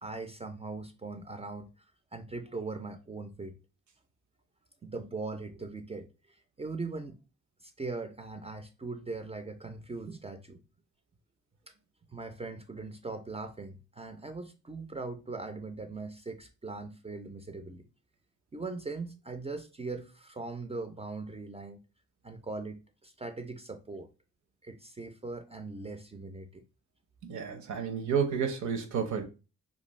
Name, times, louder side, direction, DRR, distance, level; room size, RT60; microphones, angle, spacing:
voice 1, 0.0-1.7 2.1-3.6 4.8-7.2 7.6-10.6 12.1-17.8 18.5-21.8 22.2-24.1 24.6-26.6, right 3 dB, 20° right, 0.3 m, -40 dB
voice 2, 27.2-29.2, right 7 dB, 75° right, 0.7 m, -31 dB
2.5 x 2.2 x 3.1 m
cardioid pair, 70°, 30 cm